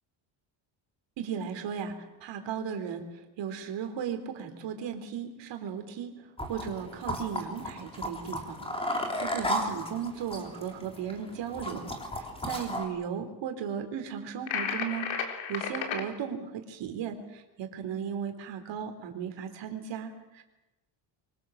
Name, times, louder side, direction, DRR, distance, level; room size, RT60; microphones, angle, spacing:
voice 1, 1.2-1.9 2.2-3.0 3.4-6.1 6.5-11.9 12.5-20.4, right 7 dB, 65° right, 6 dB, 3.8 m, -36 dB
sound 1, 6.4-12.8, equal, 10° left, 3.5 m, -35 dB
sound 2, 14.5-16.0, left 7 dB, 70° left, 4.0 m, -33 dB
25.0 x 24.5 x 7.4 m, 0.99 s
cardioid pair, 165°, 47 cm